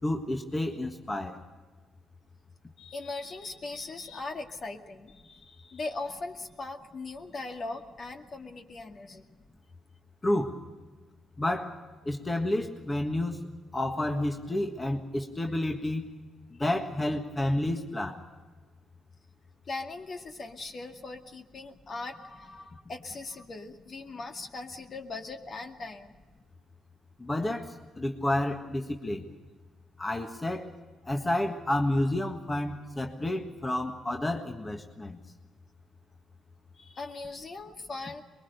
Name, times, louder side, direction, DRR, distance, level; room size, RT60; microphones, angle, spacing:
voice 1, 0.0-1.4 10.2-10.6 11.4-11.8 12.0-13.4 13.7-16.1 16.6-18.2 27.2-29.2 30.0-30.7 31.0-35.2, left 1 dB, 20° left, 3 dB, 1.6 m, -30 dB
voice 2, 2.8-9.3 19.7-26.1 36.8-38.2, left 3 dB, 45° left, 4 dB, 2.2 m, -40 dB
23.0 x 22.0 x 6.7 m, 1.4 s
cardioid pair, 90°, 0 cm